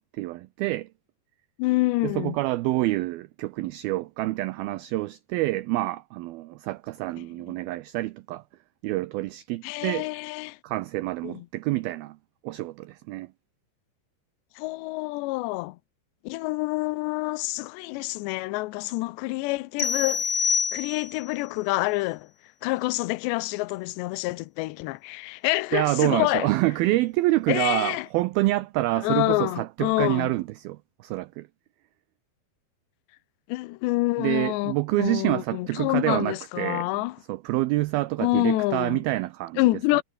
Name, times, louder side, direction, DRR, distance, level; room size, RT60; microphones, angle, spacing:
voice 1, 0.2-0.9 2.0-8.4 8.8-10.1 10.6-12.2 12.4-13.3 25.7-31.5 34.2-36.9 37.3-39.6, right 18 dB, 85° right, 2.1 m, -27 dB
voice 2, 1.6-2.4 7.2-7.6 9.6-10.6 11.2-11.5 14.6-15.8 16.2-22.3 22.6-26.5 27.5-28.1 29.0-30.3 33.5-37.2 38.2-39.0 39.6-40.0, left 21 dB, 85° left, 2.8 m, -27 dB
sound 1, 19.8-21.3, left 6 dB, 45° left, 1.3 m, -26 dB
omnidirectional pair, 5.1 m